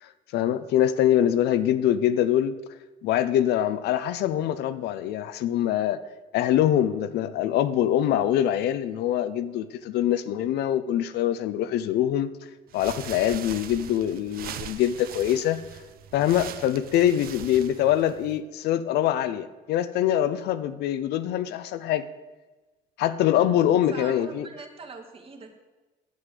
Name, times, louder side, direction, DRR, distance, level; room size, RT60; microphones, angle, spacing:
voice 1, 0.0-2.6 3.0-6.0 6.3-12.3 12.7-15.7 16.1-22.1 23.0-24.5, left 11 dB, 75° left, 13 dB, 0.6 m, -24 dB
sound 1, 12.7-18.4, right 10 dB, 60° right, 0.6 m, -41 dB
voice 2, 23.3-25.5, right 4 dB, 35° right, 3 dB, 1.8 m, -43 dB
9.3 x 8.0 x 6.6 m, 1.2 s
cardioid pair, 110°, 17 cm